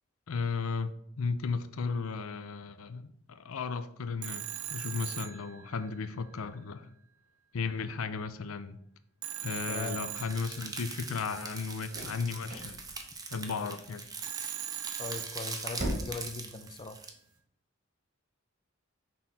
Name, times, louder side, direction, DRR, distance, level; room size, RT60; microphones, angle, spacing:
voice 1, 0.3-0.9 1.2-4.5 4.7-6.9 7.5-8.8 9.4-12.8 13.3-14.0, left 5 dB, 80° left, 12 dB, 0.5 m, -35 dB
Telephone, 4.2-6.1 9.2-11.0 14.2-15.9, right 12 dB, 85° right, 0.5 m, -40 dB
sound 1, 10.2-17.1, right 4 dB, 20° right, 0.8 m, -42 dB
sound 2, 10.2-17.4, equal, 45° right, 2.4 m, -44 dB
voice 2, 15.0-17.0, left 3 dB, 25° left, 8 dB, 0.5 m, -39 dB
5.9 x 3.7 x 5.8 m, 0.67 s
head